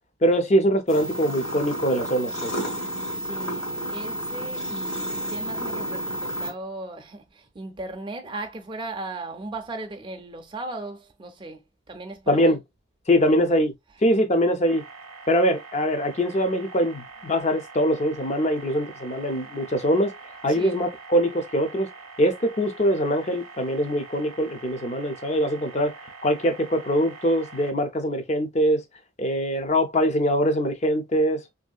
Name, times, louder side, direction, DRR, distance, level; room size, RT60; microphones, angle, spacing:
voice 1, 0.2-2.5 12.3-12.6 13.1-13.7 14.0-14.8 15.3-20.1 20.4-21.9 22.2-25.9 26.2-28.8 29.2-31.4, equal, 35° left, 0.4 m, -23 dB
sound 1, 0.9-6.5, equal, 75° left, 1.3 m, -31 dB
voice 2, 3.1-11.6 11.9-12.6 13.3-13.4 13.9-14.0 17.3-17.4 20.5-20.9 29.6-29.7, right 2 dB, 25° right, 0.4 m, -37 dB
sound 2, 14.7-27.7, right 4 dB, 85° right, 0.6 m, -44 dB
3.0 x 2.7 x 2.2 m
head